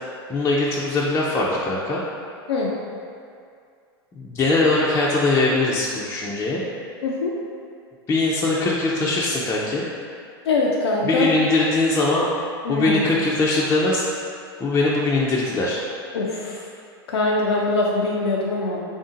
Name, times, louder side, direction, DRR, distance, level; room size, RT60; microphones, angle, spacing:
voice 1, 0.3-2.0 4.1-6.6 8.1-9.8 11.0-12.3 12.7-14.1 14.6-15.8, left 2 dB, 20° left, -5 dB, 0.5 m, -21 dB
voice 2, 7.0-7.3 10.5-11.3 12.6-13.0 16.1-16.6 17.1-18.8, left 3 dB, 85° left, -3 dB, 0.5 m, -23 dB
3.5 x 2.7 x 3.7 m, 2.3 s
hypercardioid pair, 105°, 13 cm